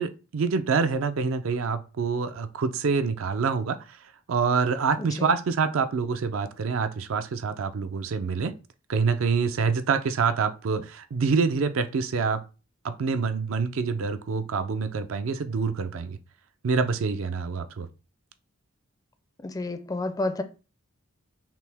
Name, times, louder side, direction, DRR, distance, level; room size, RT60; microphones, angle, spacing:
voice 1, 0.0-3.8 4.3-8.5 8.9-12.4 12.8-16.2 16.6-17.9, right 5 dB, 70° right, 0.4 m, -26 dB
voice 2, 5.0-5.3 19.4-20.4, left 2 dB, 15° left, 0.4 m, -30 dB
5.8 x 2.1 x 3.3 m
head